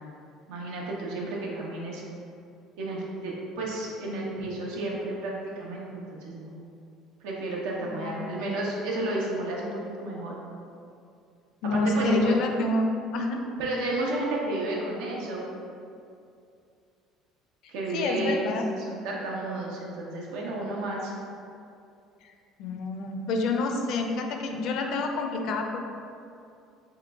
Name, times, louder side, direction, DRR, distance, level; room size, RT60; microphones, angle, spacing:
voice 1, 0.5-2.0 2.8-6.5 7.2-9.7 10.0-10.3 11.7-12.3 13.6-15.4 17.7-18.4 18.8-21.1, right 2 dB, 85° right, -3 dB, 0.8 m, -32 dB
voice 2, 11.6-13.4 17.9-18.7 22.6-25.8, left 3 dB, 60° left, 3 dB, 0.4 m, -27 dB
3.7 x 3.0 x 3.5 m, 2.5 s
cardioid pair, 140°, 0 cm